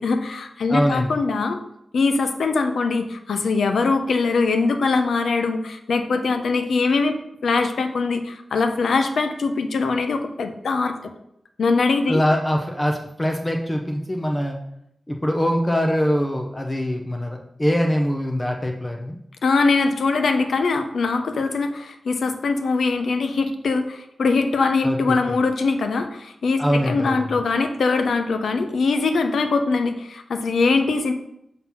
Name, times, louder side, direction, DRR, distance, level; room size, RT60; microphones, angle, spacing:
voice 1, 0.0-1.6 1.9-10.9 11.6-12.2 19.4-31.1, left 4 dB, 80° left, 7 dB, 0.7 m, -22 dB
voice 2, 0.7-1.1 12.1-14.6 15.1-19.2 24.8-25.2 26.6-27.3, equal, 15° left, 2 dB, 0.6 m, -23 dB
5.7 x 3.9 x 5.8 m, 0.79 s
wide cardioid pair, 125°, 0 cm